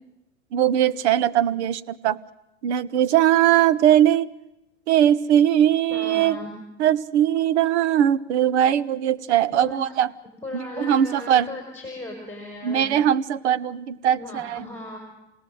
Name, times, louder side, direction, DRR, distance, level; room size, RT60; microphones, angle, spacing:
voice 1, 0.5-2.2 2.6-4.3 4.9-6.4 6.8-10.1 10.5-11.5 12.6-14.6, right 10 dB, 75° right, 16 dB, 1.1 m, -20 dB
voice 2, 5.9-6.5 9.5-9.8 10.4-12.9 14.2-15.0, left 2 dB, 5° left, 1 dB, 5.3 m, -36 dB
28.5 x 18.0 x 7.8 m, 0.92 s
supercardioid pair, 120°, 34 cm